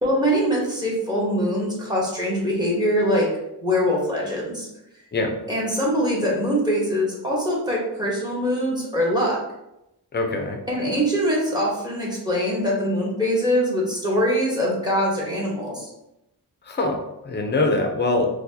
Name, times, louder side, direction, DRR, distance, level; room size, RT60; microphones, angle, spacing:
voice 1, 0.0-3.3 3.6-4.7 5.5-9.4 10.7-15.9, equal, 10° right, -4 dB, 1.2 m, -23 dB
voice 2, 10.1-10.6 16.7-17.0 17.2-18.3, left 2 dB, 25° left, 4 dB, 0.6 m, -23 dB
4.4 x 2.3 x 2.8 m, 0.88 s
wide cardioid pair, 95°, 41 cm